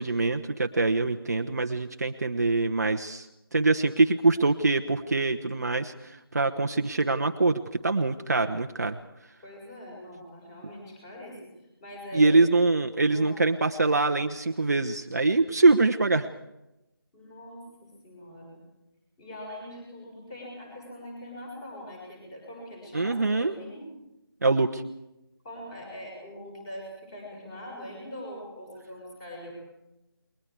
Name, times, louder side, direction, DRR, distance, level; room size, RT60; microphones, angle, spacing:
voice 1, 0.0-9.0 12.1-16.3 22.9-23.5 24.4-24.8, right 3 dB, 40° right, 5 dB, 1.1 m, -24 dB
voice 2, 9.4-11.5 11.8-12.4 13.1-13.4 17.1-18.6 19.2-23.9 25.4-29.5, equal, 10° left, -1 dB, 6.6 m, -42 dB
29.0 x 22.0 x 4.8 m, 0.92 s
figure-of-eight pair, 165°, 13 cm